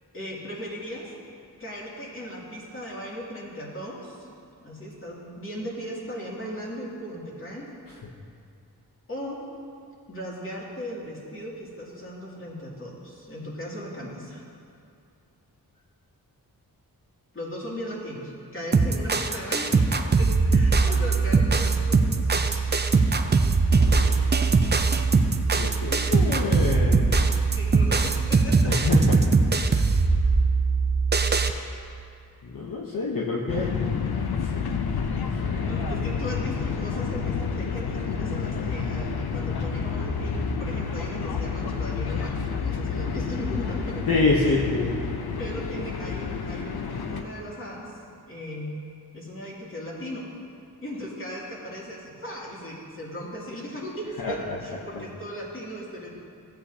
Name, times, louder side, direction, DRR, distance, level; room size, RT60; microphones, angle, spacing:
voice 1, 0.1-1.1 1.6-4.3 4.6-7.7 9.1-9.4 10.1-14.5 17.3-19.8 20.2-22.8 25.9-26.1 27.5-28.7 35.6-44.1 44.4-44.6 45.4-48.0 48.3-48.7 49.1-50.2 50.8-56.1, equal, 35° left, -5 dB, 2.6 m, -37 dB
sound 1, 18.7-31.5, right 4 dB, 25° right, 0.6 m, -21 dB
voice 2, 23.7-24.2 25.6-27.1 28.6-29.2 32.4-33.7 34.4-34.6 35.1-35.7 44.1-44.9 54.2-54.3, left 3 dB, 60° left, -4 dB, 1.0 m, -27 dB
sound 2, 33.5-47.2, left 5 dB, 80° left, 0.7 m, -29 dB
15.5 x 8.2 x 2.8 m, 2.4 s
cardioid pair, 75°, 38 cm